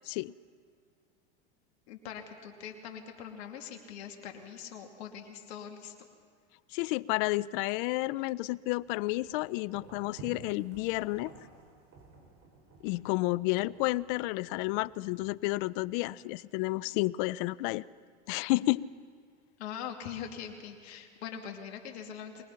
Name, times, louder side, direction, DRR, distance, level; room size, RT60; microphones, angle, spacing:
voice 1, 1.9-6.1 19.6-22.4, left 8 dB, 65° left, 3 dB, 2.7 m, -42 dB
voice 2, 6.7-11.3 12.8-17.8 18.3-18.9, left 20 dB, 50° left, 21 dB, 0.5 m, -31 dB
sound 1, 8.7-15.9, right 3 dB, 40° right, 5.5 m, -54 dB
23.5 x 20.0 x 5.8 m, 2.1 s
hypercardioid pair, 115°, 34 cm